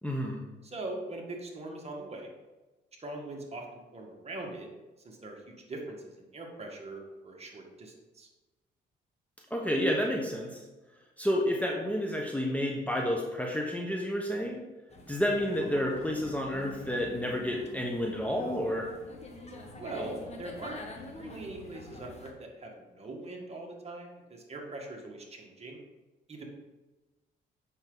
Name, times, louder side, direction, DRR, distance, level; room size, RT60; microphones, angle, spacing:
voice 1, 0.0-0.4 9.5-10.6 11.2-14.6 15.1-18.9, equal, 5° left, 0 dB, 1.0 m, -30 dB
voice 2, 0.6-2.3 3.0-4.7 5.0-8.3 19.8-20.8 21.1-25.8 26.3-26.4, right 2 dB, 30° right, 0 dB, 1.8 m, -42 dB
sound 1, 14.9-22.3, left 1 dB, 30° left, 1.4 m, -46 dB
7.9 x 6.0 x 3.9 m, 1.1 s
cardioid pair, 90°, 20 cm